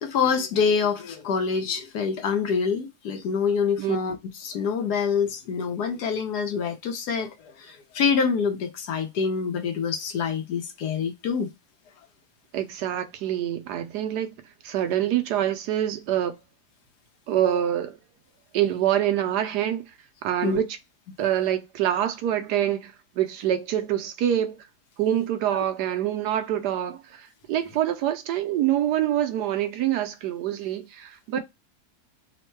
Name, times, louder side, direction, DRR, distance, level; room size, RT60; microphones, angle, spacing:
voice 1, 0.0-11.5 20.4-20.6, left 6 dB, 80° left, 1.4 m, -26 dB
voice 2, 12.5-14.3 14.6-16.3 17.3-18.0 18.5-19.8 20.2-20.8 21.2-24.6 25.0-31.4, right 11 dB, 85° right, 1.2 m, -25 dB
3.6 x 2.1 x 4.4 m
omnidirectional pair, 1.7 m